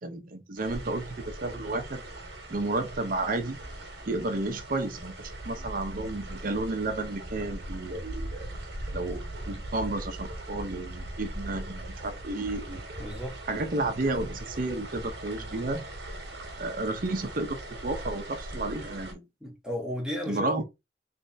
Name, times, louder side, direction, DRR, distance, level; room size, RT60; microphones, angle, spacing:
voice 1, 0.0-2.0 2.5-3.6 4.1-8.5 8.9-12.8 13.5-15.8 16.6-19.2 20.3-20.6, right 2 dB, 50° right, 0.7 m, -32 dB
sound 1, 0.6-19.1, right 1 dB, 70° right, 1.2 m, -40 dB
voice 2, 13.0-13.4 19.4-20.6, equal, 5° right, 1.2 m, -34 dB
3.4 x 3.1 x 2.6 m
head